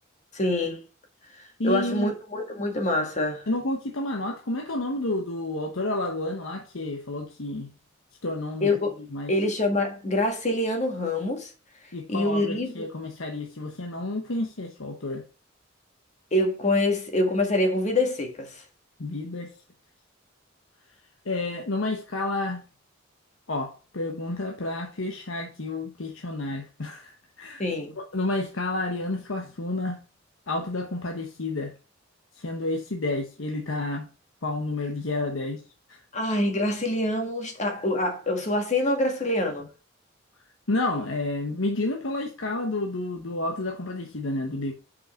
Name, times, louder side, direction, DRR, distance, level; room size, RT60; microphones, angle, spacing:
voice 1, 0.3-0.8 1.4-3.5 8.6-8.9 9.3-11.5 12.1-12.8 16.3-18.6 27.6-28.0 36.1-39.7, left 1 dB, 35° left, 1.9 m, -25 dB
voice 2, 1.6-2.1 3.5-7.7 8.2-8.7 9.1-9.3 11.9-15.2 19.0-19.5 21.2-22.6 23.5-27.6 28.0-30.0 30.5-31.7 32.4-34.1 34.4-35.6 35.9-36.0 40.7-44.7, left 2 dB, 75° left, 1.1 m, -30 dB
5.5 x 5.5 x 5.6 m
head